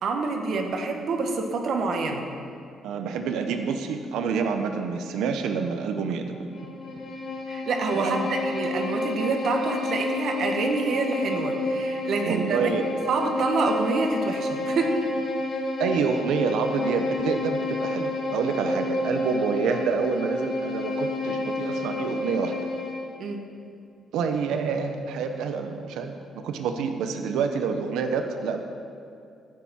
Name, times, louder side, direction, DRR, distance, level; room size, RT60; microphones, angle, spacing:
voice 1, 0.0-2.3 7.5-12.7 13.1-15.0 23.2-23.4, right 3 dB, 65° right, 3 dB, 1.6 m, -27 dB
voice 2, 2.8-6.4 8.0-8.2 12.2-12.9 15.8-22.5 24.1-26.2 26.4-28.6, right 6 dB, 85° right, 6 dB, 0.9 m, -27 dB
Bowed string instrument, 6.5-23.1, left 2 dB, 70° left, 2.6 m, -30 dB
15.0 x 10.5 x 4.4 m, 2.6 s
cardioid pair, 90°, 0 cm